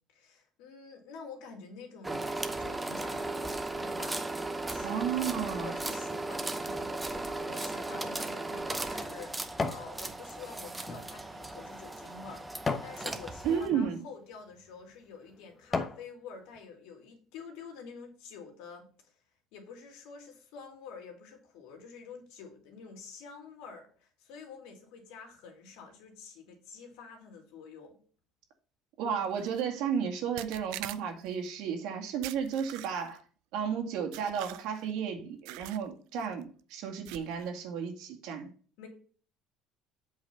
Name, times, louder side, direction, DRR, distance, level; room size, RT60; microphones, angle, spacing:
voice 1, 0.1-4.3 4.6-5.2 5.5-19.1 19.5-28.0 38.8-38.9, left 5 dB, 85° left, 3 dB, 2.8 m, -48 dB
sound 1, 2.0-13.7, right 2 dB, 10° right, 0.8 m, -36 dB
voice 2, 4.8-5.7 13.4-14.0 29.0-33.2 33.5-38.5, right 7 dB, 75° right, 4 dB, 2.0 m, -33 dB
sound 2, 9.3-9.9 10.4-13.0 13.6-13.8 14.5-14.7 15.2-16.1 16.5-16.6, left 4 dB, 20° left, 1.0 m, -37 dB
sound 3, 29.3-29.6 30.4-31.3 32.2-33.2 34.1-34.9 35.4-35.9 36.2-36.4 37.0-37.5, right 17 dB, 90° right, 0.5 m, -44 dB
8.2 x 4.8 x 5.8 m, 0.42 s
cardioid pair, 145°, 0 cm